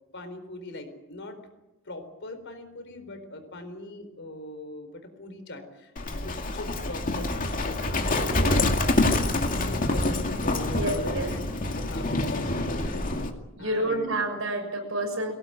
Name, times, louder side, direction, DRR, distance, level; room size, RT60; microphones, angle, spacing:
voice 1, 0.1-1.4 1.8-8.8 9.5-13.1 13.6-14.2, left 2 dB, 60° left, 7 dB, 4.3 m, -40 dB
Livestock farm animals working animals, 6.0-13.3, left 2 dB, 40° left, 2.3 m, -26 dB
voice 2, 8.0-8.6 9.1-9.7 10.6-11.3 13.6-15.3, right 1 dB, 70° right, 5 dB, 6.5 m, -30 dB
22.5 x 18.0 x 9.1 m, 1.0 s
head